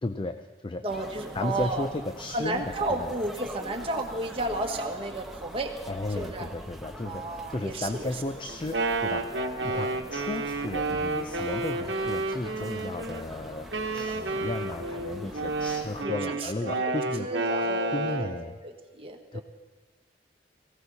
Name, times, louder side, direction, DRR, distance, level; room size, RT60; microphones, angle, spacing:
voice 1, 0.0-0.9 1.3-2.6 2.9-3.1 5.9-17.5 17.9-18.6 19.3-19.4, left 2 dB, 30° left, 9 dB, 0.5 m, -34 dB
voice 2, 0.8-1.8 2.3-5.8 6.1-6.5 7.0-8.1 9.7-9.9 14.3-14.5 15.2-15.4 16.0-16.9 17.2-18.3 18.6-19.4, right 2 dB, 30° right, 1 dB, 1.5 m, -33 dB
sound 1, 0.9-16.0, equal, ahead, 1.1 m, -44 dB
Wind instrument woodwind instrument, 8.5-13.2 13.7-18.4, right 2 dB, 70° right, 1.2 m, -30 dB
18.5 x 16.0 x 4.1 m, 1.3 s
head